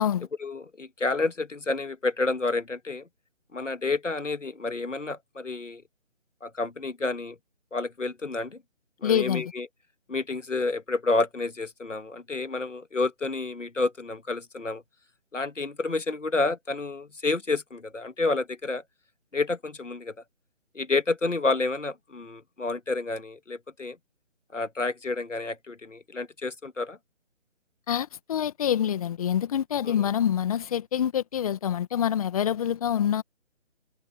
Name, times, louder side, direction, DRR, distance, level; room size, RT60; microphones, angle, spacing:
voice 1, 0.4-3.1 3.5-5.8 6.4-7.4 7.7-8.6 9.0-9.7 10.1-14.8 15.3-18.8 19.3-20.2 20.7-24.0 24.5-27.0 29.8-30.1, left 3 dB, 90° left, 2.1 m, -29 dB
voice 2, 9.0-9.4 27.9-33.2, left 9 dB, 30° left, 1.8 m, -26 dB
figure-of-eight pair, 150°, 36 cm